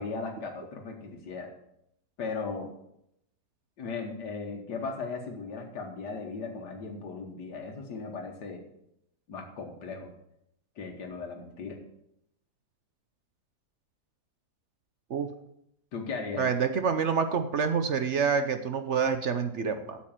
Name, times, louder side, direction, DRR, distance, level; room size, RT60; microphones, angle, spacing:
voice 1, 0.0-1.5 2.2-2.7 3.8-8.6 9.3-10.1 10.8-11.8 15.9-16.5, left 4 dB, 90° left, 2 dB, 1.9 m, -37 dB
voice 2, 16.4-20.0, right 6 dB, 55° right, 8 dB, 0.9 m, -27 dB
8.7 x 7.5 x 7.4 m, 0.79 s
omnidirectional pair, 1.7 m